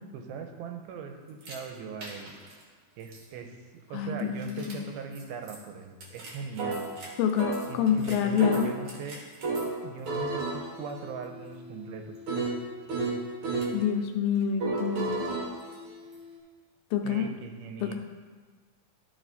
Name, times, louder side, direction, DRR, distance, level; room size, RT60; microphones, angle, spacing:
voice 1, 0.1-2.4 3.0-3.6 3.9-6.9 7.7-9.2 9.8-12.2 17.0-17.9, right 5 dB, 85° right, 4 dB, 2.6 m, -40 dB
sound 1, 1.4-1.6 2.0-2.5 3.1-3.2 4.4-4.7 5.2-5.3 5.5-5.6 6.0-7.1 7.4-9.7 10.1-13.8 14.6-16.4, right 3 dB, 55° right, 1.6 m, -33 dB
voice 2, 3.9-4.9 7.2-8.7 13.7-15.3 16.9-17.3 17.8-17.9, left 8 dB, 80° left, 4 dB, 2.2 m, -27 dB
12.5 x 4.8 x 4.0 m, 1.4 s
omnidirectional pair, 4.4 m